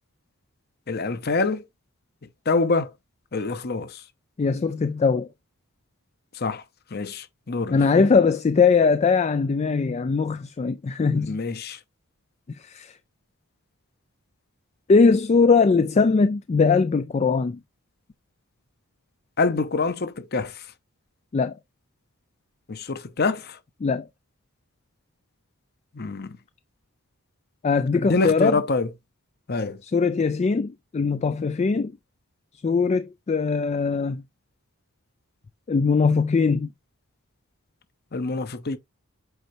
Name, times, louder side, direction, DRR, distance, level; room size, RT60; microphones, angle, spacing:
voice 1, 0.9-1.6 2.5-2.9 3.3-4.0 6.3-6.6 6.9-7.8 11.1-11.8 19.4-20.7 22.7-23.6 25.9-26.4 27.9-28.9 29.5-29.8 38.1-38.8, left 3 dB, 45° left, 0.8 m, -26 dB
voice 2, 4.4-5.3 7.7-11.4 12.6-12.9 14.9-17.6 21.3-21.6 23.8-24.1 27.6-28.6 29.8-31.9 32.6-34.2 35.7-36.7, left 4 dB, 30° left, 0.3 m, -21 dB
8.0 x 4.4 x 2.7 m
head